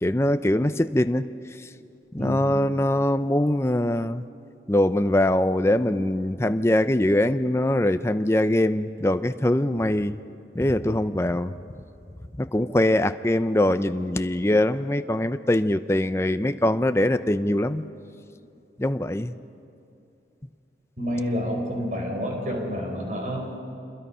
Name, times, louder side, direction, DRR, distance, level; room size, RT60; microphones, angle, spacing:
voice 1, 0.0-1.3 2.1-4.2 4.7-10.2 10.5-11.5 12.4-17.8 18.8-19.3, left 1 dB, 15° left, 10 dB, 0.5 m, -22 dB
voice 2, 2.2-2.5 21.0-23.6, equal, 45° right, 0 dB, 4.7 m, -29 dB
26.5 x 22.0 x 5.6 m, 2.7 s
head